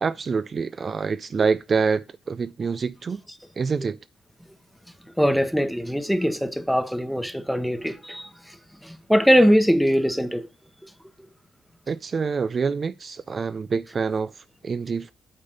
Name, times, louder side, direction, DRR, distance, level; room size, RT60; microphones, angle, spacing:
voice 1, 0.0-3.2 3.6-4.0 11.9-15.1, right 5 dB, 40° right, 0.3 m, -26 dB
voice 2, 5.2-8.6 8.8-10.5 10.8-10.9, equal, ahead, 0.9 m, -21 dB
8.7 x 4.0 x 5.1 m
cardioid pair, 90°, 0 cm